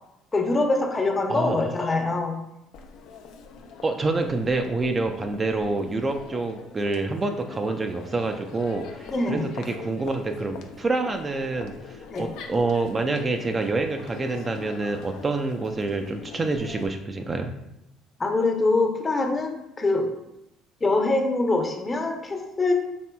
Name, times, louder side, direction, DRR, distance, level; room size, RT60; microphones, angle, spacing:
voice 1, 0.3-2.3 9.0-9.5 12.1-12.3 18.2-20.1 20.8-22.7, left 2 dB, 25° left, 3 dB, 0.7 m, -24 dB
Crowd, 2.7-16.9, left 5 dB, 75° left, 0.4 m, -43 dB
voice 2, 3.8-17.5, right 3 dB, 30° right, 5 dB, 0.3 m, -27 dB
4.3 x 3.2 x 2.2 m, 0.87 s
supercardioid pair, 80°, 0 cm